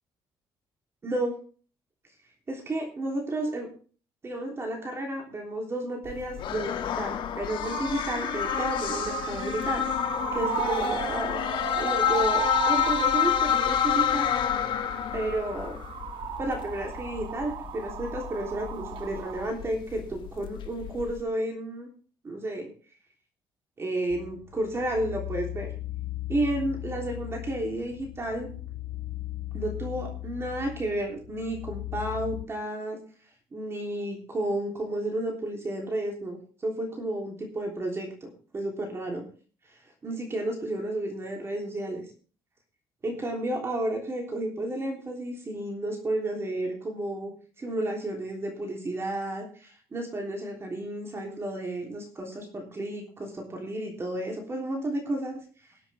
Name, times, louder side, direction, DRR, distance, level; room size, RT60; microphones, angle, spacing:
voice 1, 1.0-1.3 2.5-3.7 4.2-9.9 10.3-11.4 11.8-14.3 15.1-15.8 16.4-21.9 22.2-22.7 23.8-25.7 26.3-28.5 29.5-33.0 33.5-39.2 40.0-42.0 43.0-47.3 47.6-55.4, right 1 dB, 30° right, 1 dB, 3.4 m, -32 dB
sound 1, 6.0-21.2, left 10 dB, 60° left, 1.6 m, -29 dB
sound 2, 7.6-19.5, right 10 dB, 70° right, 1.4 m, -35 dB
sound 3, 24.1-32.4, left 16 dB, 85° left, 3.0 m, -38 dB
20.5 x 8.0 x 3.5 m, 0.39 s
cardioid pair, 120°, 9 cm